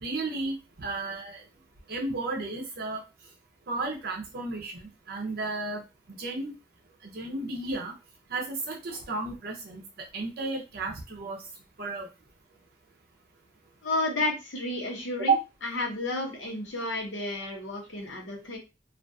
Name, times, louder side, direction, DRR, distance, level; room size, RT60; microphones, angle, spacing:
voice 1, 0.0-1.4 1.9-3.0 3.7-5.8 6.1-6.5 7.0-7.9 8.3-11.4 11.8-12.1 15.2-15.4, right 3 dB, 55° right, 0 dB, 0.6 m, -32 dB
voice 2, 13.8-15.4 15.6-18.6, left 2 dB, 75° left, 0 dB, 0.8 m, -31 dB
2.4 x 2.3 x 2.6 m, 0.27 s
head